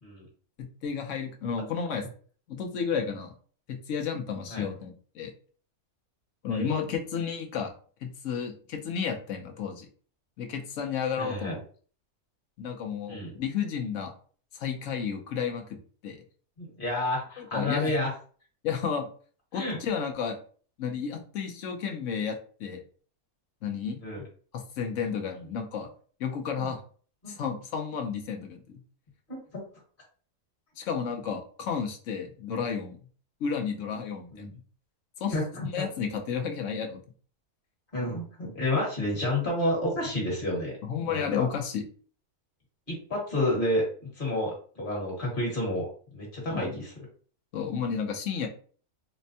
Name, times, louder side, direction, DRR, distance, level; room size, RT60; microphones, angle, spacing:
voice 1, 0.6-2.0 2.5-3.3 3.7-5.3 6.4-7.7 8.0-9.9 10.4-11.5 12.6-14.1 14.5-15.6 16.0-16.2 17.4-17.9 18.6-19.1 19.5-20.4 20.8-22.8 23.6-24.0 24.5-25.9 26.2-26.8 27.3-28.8 30.8-33.0 33.4-34.5 35.2-37.0 40.8-41.8 46.5-46.7 47.5-48.5, left 6 dB, 65° left, 3 dB, 0.9 m, -32 dB
voice 2, 11.2-11.6 13.1-13.3 16.6-18.1 19.5-19.8 24.0-24.2 26.5-26.7 27.2-27.4 29.3-29.4 34.3-34.5 35.3-35.8 37.9-40.7 41.0-41.3 42.9-43.8 44.2-45.9 46.1-46.9, left 1 dB, 35° left, -2 dB, 1.5 m, -30 dB
4.3 x 2.1 x 2.7 m, 0.43 s
omnidirectional pair, 1.6 m